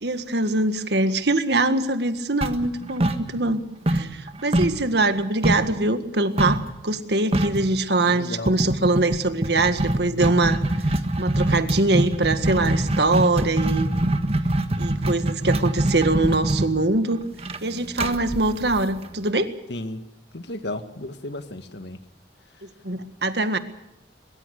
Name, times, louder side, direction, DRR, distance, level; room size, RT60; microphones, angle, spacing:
voice 1, 0.0-3.6 3.9-10.6 10.8-13.9 14.8-17.2 17.6-19.5 22.8-23.6, right 2 dB, 65° right, 9 dB, 1.8 m, -23 dB
sound 1, 2.4-3.6 3.9-5.8 6.4-6.7 7.0-7.1 7.3-7.7 8.5-19.3, right 1 dB, 35° right, 1.6 m, -24 dB
voice 2, 8.1-8.6 19.7-20.0 20.3-22.0, left 1 dB, 70° left, 9 dB, 1.8 m, -33 dB
23.0 x 22.5 x 6.5 m, 0.86 s
head